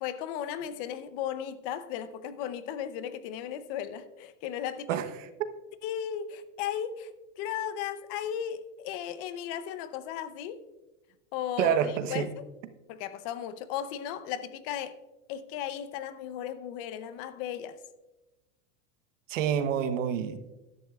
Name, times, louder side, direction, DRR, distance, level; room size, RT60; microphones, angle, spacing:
voice 1, 0.0-5.0 5.8-10.6 11.3-12.3 12.9-14.9 15.3-17.8, left 9 dB, 45° left, 0.7 m, -36 dB
voice 2, 4.9-5.3 11.6-12.3 19.3-20.4, right 8 dB, 85° right, 1.1 m, -28 dB
13.5 x 11.5 x 2.4 m
supercardioid pair, 155°, 37 cm